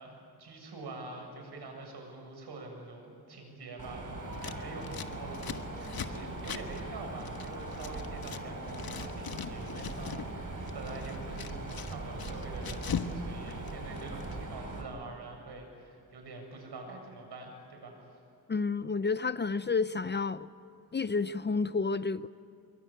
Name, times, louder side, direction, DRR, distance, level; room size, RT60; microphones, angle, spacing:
voice 1, 0.0-18.2, right 2 dB, 85° right, 2 dB, 7.5 m, -45 dB
Mechanisms, 3.8-14.8, right 2 dB, 55° right, 5.4 m, -40 dB
Scissors, 4.3-8.4 8.7-10.3 10.6-13.2 13.4-14.3, left 7 dB, 65° left, 1.5 m, -40 dB
voice 2, 18.5-20.5 20.9-22.3, left 4 dB, 25° left, 15 dB, 0.6 m, -30 dB
28.5 x 23.0 x 9.0 m, 2.5 s
wide cardioid pair, 105°, 39 cm